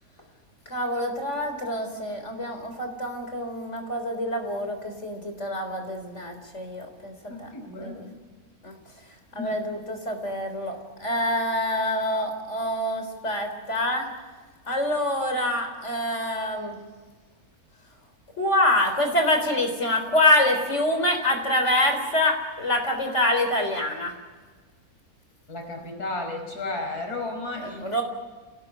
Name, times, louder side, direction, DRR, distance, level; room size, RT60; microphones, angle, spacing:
voice 1, 0.7-7.5 7.8-8.1 8.6-8.7 9.3-14.1 14.7-16.8 18.4-24.1 27.6-28.0, left 1 dB, 50° left, 5 dB, 4.1 m, -26 dB
voice 2, 7.3-8.1 9.4-9.6 25.5-27.9, left 2 dB, 90° left, 3 dB, 5.6 m, -33 dB
28.0 x 18.5 x 9.8 m, 1.4 s
omnidirectional pair, 1.6 m